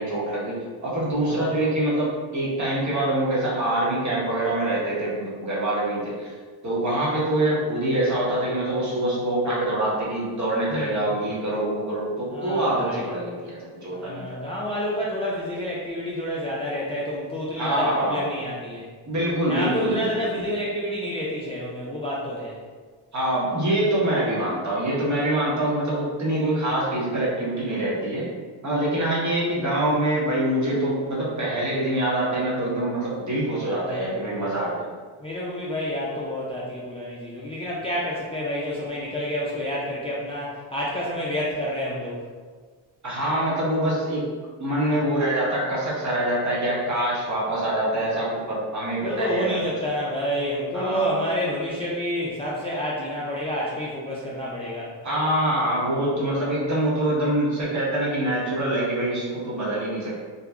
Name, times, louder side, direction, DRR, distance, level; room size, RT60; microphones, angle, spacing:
voice 1, 0.0-6.3 6.6-14.4 17.6-18.3 19.1-20.3 23.1-28.3 28.6-34.9 43.0-44.3 44.6-49.6 50.7-51.3 55.0-60.2, right 1 dB, 35° right, -6 dB, 1.2 m, -25 dB
voice 2, 10.7-11.0 12.3-13.1 13.9-18.9 19.5-22.6 33.5-34.5 35.2-42.2 44.7-44.8 49.0-54.9, equal, 15° left, -6 dB, 0.4 m, -29 dB
2.9 x 2.3 x 3.5 m, 1.5 s
cardioid pair, 90°, 48 cm